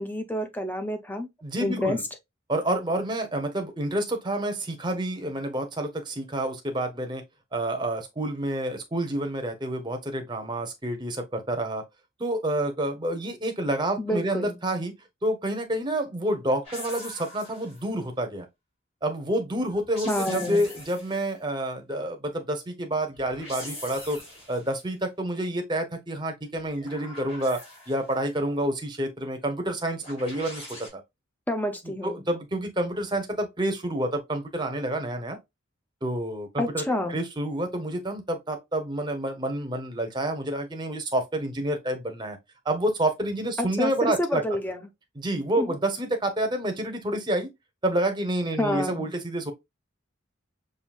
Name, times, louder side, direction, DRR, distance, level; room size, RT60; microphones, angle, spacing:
voice 1, 0.0-1.3 1.6-2.0 14.0-14.6 20.0-20.6 31.5-32.2 36.6-37.2 43.6-44.8 45.6-45.8 48.6-49.1, left 1 dB, 10° left, 0.5 m, -28 dB
voice 2, 1.4-2.0 2.5-7.2 7.5-11.8 12.2-14.9 15.2-18.5 19.0-24.2 24.5-27.6 27.9-30.7 30.9-31.0 32.0-35.4 36.0-36.8 37.1-42.4 42.6-44.4 45.2-47.5 47.8-49.5, right 1 dB, 20° right, 0.7 m, -28 dB
sound 1, 16.6-17.9 19.7-21.3 23.1-24.7 26.5-28.2 30.0-30.9, left 1 dB, 30° left, 2.3 m, -42 dB
5.6 x 2.7 x 2.3 m
head